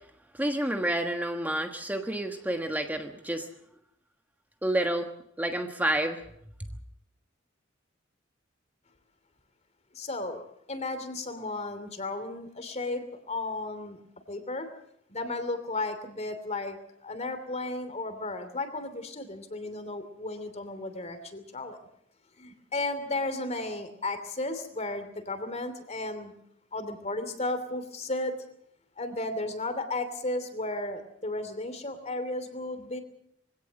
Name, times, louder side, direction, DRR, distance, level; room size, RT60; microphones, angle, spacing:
voice 1, 0.3-3.5 4.6-5.1 5.4-6.2 6.6-6.7, right 1 dB, 10° right, 4 dB, 1.3 m, -29 dB
voice 2, 9.9-14.0 14.3-14.7 15.1-21.8 22.4-26.3 26.7-28.3 29.0-33.0, left 2 dB, 35° left, 10 dB, 2.9 m, -34 dB
23.0 x 17.0 x 7.6 m, 0.74 s
head